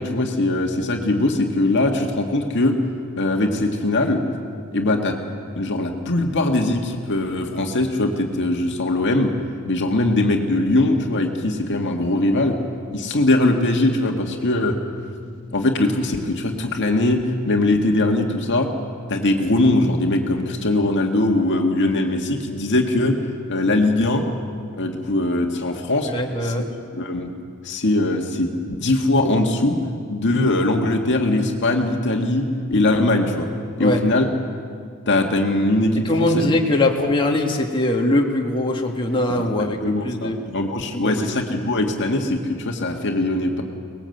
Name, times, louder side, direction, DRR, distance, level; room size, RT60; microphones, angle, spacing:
voice 1, 0.0-2.8 3.2-4.2 4.7-5.2 5.6-9.3 9.7-12.6 12.9-14.8 15.5-18.7 19.1-23.2 23.5-24.2 24.8-26.1 26.4-26.5 26.9-27.3 27.6-29.8 30.1-33.5 33.8-34.2 35.1-36.5 39.3-43.6, left 2 dB, 55° left, 2 dB, 1.9 m, -21 dB
voice 2, 26.1-26.7 33.8-34.0 36.1-40.4 40.9-41.3, left 1 dB, 20° left, 0 dB, 1.9 m, -21 dB
23.5 x 20.5 x 8.0 m, 2.2 s
head